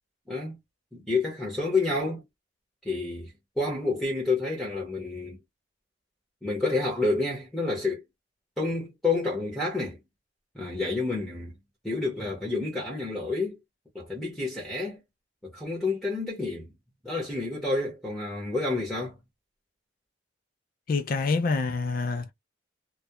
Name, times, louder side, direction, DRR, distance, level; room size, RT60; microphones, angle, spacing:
voice 1, 0.3-0.6 0.9-2.2 2.8-3.3 3.6-5.4 6.4-8.0 8.6-10.0 10.5-11.5 11.8-13.6 13.9-15.0 15.4-16.7 17.0-19.2, left 3 dB, ahead, 0.7 m, -29 dB
voice 2, 20.9-22.3, left 4 dB, 45° left, 0.4 m, -26 dB
2.2 x 2.1 x 2.8 m
head